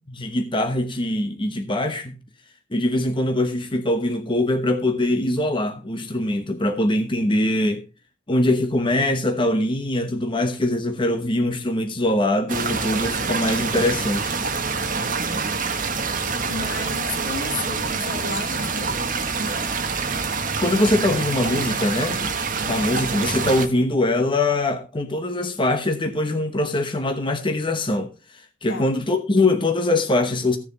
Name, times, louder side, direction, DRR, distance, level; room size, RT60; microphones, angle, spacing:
voice 1, 0.1-2.2 2.7-7.8 8.3-14.3 20.6-22.2 22.7-28.1 28.6-30.6, left 1 dB, 25° left, 1.1 m, -22 dB
sound 1, 12.5-23.7, right 4 dB, 45° right, 1.4 m, -26 dB
voice 2, 16.5-19.1 28.7-28.9, left 3 dB, 70° left, 2.4 m, -33 dB
15.5 x 7.0 x 4.0 m
head